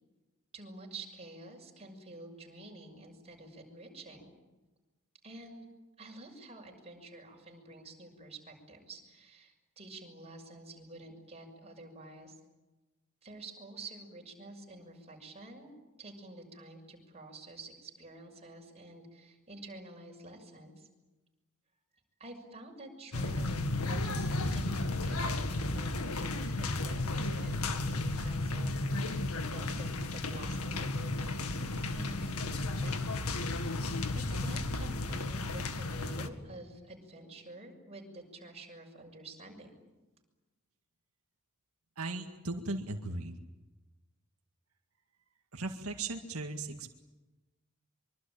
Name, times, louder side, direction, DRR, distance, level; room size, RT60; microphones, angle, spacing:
voice 1, 0.5-4.3 5.2-5.7 6.0-12.3 13.2-15.7 16.0-20.9 22.2-33.3 34.1-39.8, right 2 dB, 30° right, 1 dB, 6.4 m, -49 dB
sound 1, 23.1-36.3, left 2 dB, 90° left, 2.0 m, -33 dB
voice 2, 42.0-43.4 45.5-46.9, right 2 dB, 80° right, 3 dB, 2.0 m, -37 dB
24.5 x 24.5 x 8.9 m, 1.1 s
head